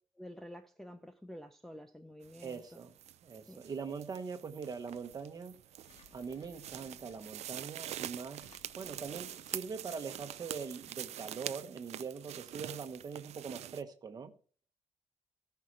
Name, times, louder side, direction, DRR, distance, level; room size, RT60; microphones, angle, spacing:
voice 1, 0.2-2.6 3.5-3.6, equal, 5° left, 0.6 m, -49 dB
sound 1, 2.2-13.8, right 12 dB, 65° right, 0.4 m, -45 dB
voice 2, 2.4-3.0 3.2-5.6 6.1-14.3, right 5 dB, 35° right, 1.3 m, -42 dB
Engine, 4.4-10.6, left 6 dB, 65° left, 1.7 m, -65 dB
17.0 x 5.9 x 4.8 m
wide cardioid pair, 170°, 12 cm